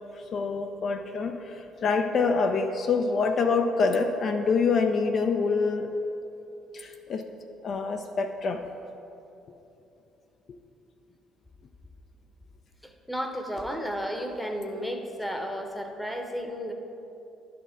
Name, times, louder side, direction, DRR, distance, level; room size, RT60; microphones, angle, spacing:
voice 1, 0.1-5.9 6.7-7.2 7.6-8.6 10.5-10.6, left 4 dB, 50° left, 5 dB, 0.4 m, -26 dB
voice 2, 12.8-16.7, equal, 5° left, 4 dB, 0.9 m, -33 dB
11.5 x 4.3 x 3.7 m, 3.0 s
hypercardioid pair, 50°, 0 cm